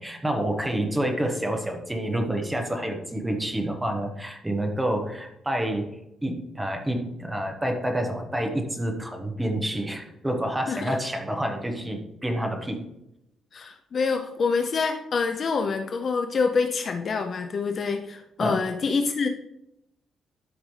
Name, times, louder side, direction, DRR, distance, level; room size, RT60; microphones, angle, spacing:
voice 1, 0.0-5.9 6.2-12.9 18.4-18.6, right 1 dB, 10° right, 3 dB, 1.0 m, -28 dB
voice 2, 13.5-19.3, left 4 dB, 35° left, 6 dB, 0.5 m, -26 dB
12.5 x 5.1 x 3.2 m, 0.85 s
cardioid pair, 165°, 0 cm